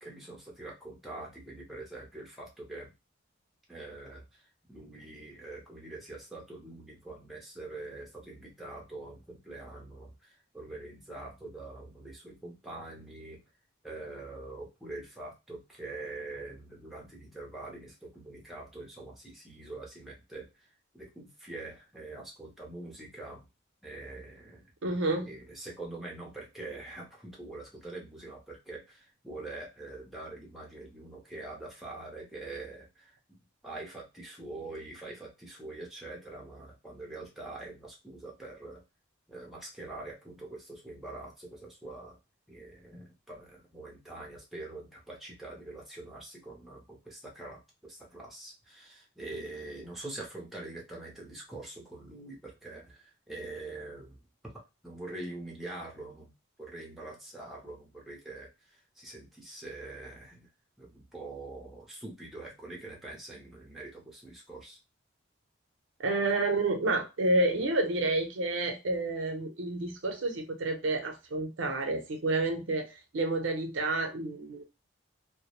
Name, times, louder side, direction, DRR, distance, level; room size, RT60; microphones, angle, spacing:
voice 1, 0.0-2.9 3.7-4.4 4.7-13.4 13.8-20.5 20.9-23.4 23.8-24.6 25.3-33.1 33.6-38.8 39.3-42.2 42.5-54.2 54.8-56.3 56.6-60.5 60.8-64.8, right 2 dB, ahead, 0.6 m, -44 dB
voice 2, 24.8-25.3 66.0-74.6, right 2 dB, 75° right, 0.6 m, -29 dB
2.2 x 2.0 x 2.9 m
head